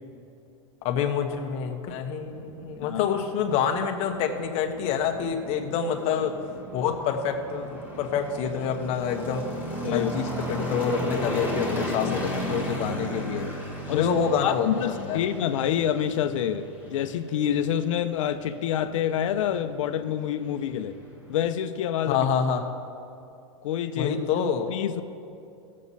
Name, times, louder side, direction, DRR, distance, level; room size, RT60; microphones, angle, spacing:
voice 1, 0.8-6.4 6.7-9.6 9.9-13.5 13.9-15.2 22.1-22.6 24.0-24.7, left 7 dB, 40° left, 4 dB, 1.2 m, -27 dB
sound 1, 2.2-21.5, equal, 10° right, 1.5 m, -36 dB
voice 2, 14.4-21.0 21.3-22.3 23.6-24.1 24.7-25.0, left 9 dB, 80° left, 9 dB, 0.8 m, -27 dB
18.0 x 7.5 x 4.2 m, 2.7 s
supercardioid pair, 150°, 16 cm